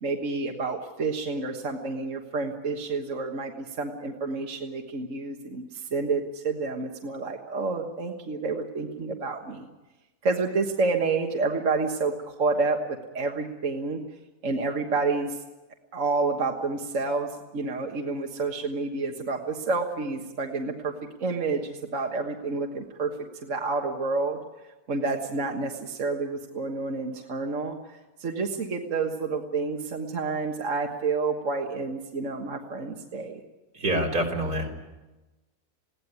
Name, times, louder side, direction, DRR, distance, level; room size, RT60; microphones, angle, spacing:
voice 1, 0.0-9.7 10.2-14.0 14.4-15.4 15.9-20.9 21.2-24.4 24.9-33.4, right 3 dB, 55° right, 2 dB, 1.8 m, -29 dB
voice 2, 33.7-34.7, right 1 dB, 80° right, 0 dB, 4.2 m, -26 dB
20.5 x 17.0 x 9.7 m, 1.1 s
omnidirectional pair, 1.6 m